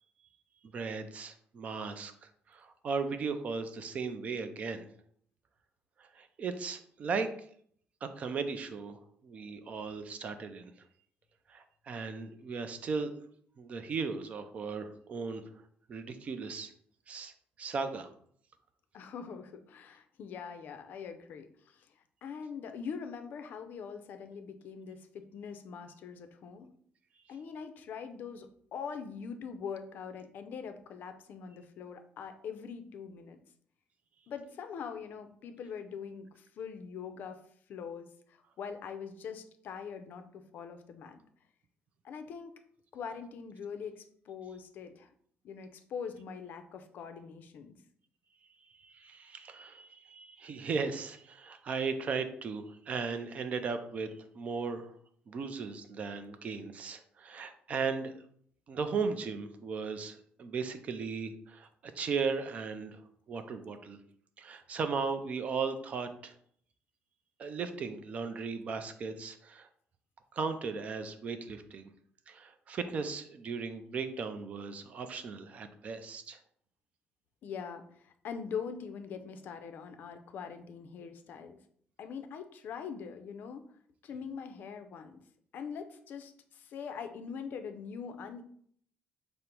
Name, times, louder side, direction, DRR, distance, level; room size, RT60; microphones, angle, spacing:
voice 1, 0.6-4.8 6.0-7.3 8.0-10.7 11.5-13.1 13.6-15.6 15.9-16.7 17.1-17.3 17.6-18.1 48.8-54.9 55.3-58.2 58.7-61.7 62.0-63.0 63.3-64.0 64.4-66.3 67.4-69.7 70.3-71.9 72.3-76.4, right 5 dB, 35° right, 9 dB, 0.4 m, -37 dB
voice 2, 18.9-21.9 22.2-26.7 27.3-33.4 34.3-37.4 37.7-41.2 42.0-42.5 42.9-45.1 45.4-47.8 77.4-81.6 82.0-83.7 84.0-85.2 85.5-88.4, left 6 dB, 50° left, 8 dB, 0.4 m, -43 dB
5.1 x 2.0 x 4.4 m, 0.63 s
cardioid pair, 170°, 4 cm